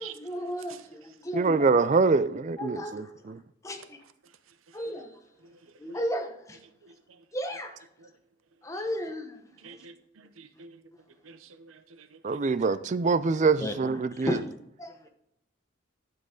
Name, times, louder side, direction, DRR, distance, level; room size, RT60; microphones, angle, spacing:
voice 1, 0.0-1.6 2.6-3.2 3.6-4.0 4.7-5.1 5.8-6.6 7.3-7.7 8.6-9.4 12.6-12.7 13.6-13.7 14.1-14.4 14.8-15.0, equal, 15° left, 1.0 m, -34 dB
voice 2, 1.3-3.4 12.2-14.4, right 4 dB, 35° right, 0.4 m, -25 dB
voice 3, 5.4-6.0 6.8-7.2 8.0-8.1 9.6-10.8 11.2-12.5, right 6 dB, 85° right, 0.7 m, -49 dB
11.5 x 7.7 x 3.8 m
head